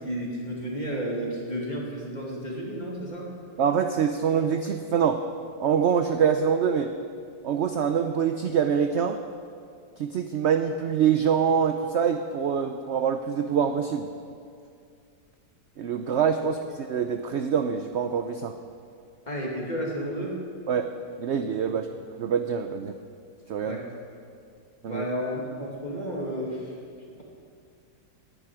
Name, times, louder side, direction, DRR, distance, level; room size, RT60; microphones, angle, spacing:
voice 1, 0.0-3.3 16.4-16.5 19.3-20.4 21.7-21.8 23.6-23.8 24.8-26.7, equal, 25° left, -2 dB, 2.5 m, -32 dB
voice 2, 3.6-5.2 5.6-6.9 7.4-9.2 10.0-14.1 15.8-18.5 20.7-20.9 21.2-21.9 22.2-22.9 23.5-23.8 24.8-25.0, right 7 dB, 65° right, 7 dB, 0.7 m, -25 dB
19.0 x 10.5 x 4.8 m, 2.3 s
omnidirectional pair, 1.8 m